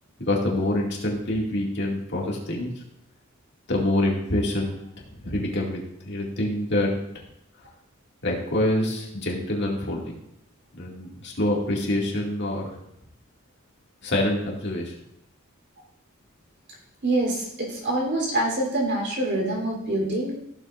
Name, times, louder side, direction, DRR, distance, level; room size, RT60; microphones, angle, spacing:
voice 1, 0.2-2.7 3.7-4.8 5.2-5.8 6.0-7.2 8.2-10.2 10.7-12.7 14.0-14.9, left 1 dB, 55° left, -2 dB, 2.3 m, -26 dB
voice 2, 17.0-20.3, right 1 dB, 55° right, -2 dB, 3.5 m, -25 dB
15.5 x 7.5 x 2.5 m, 0.78 s
head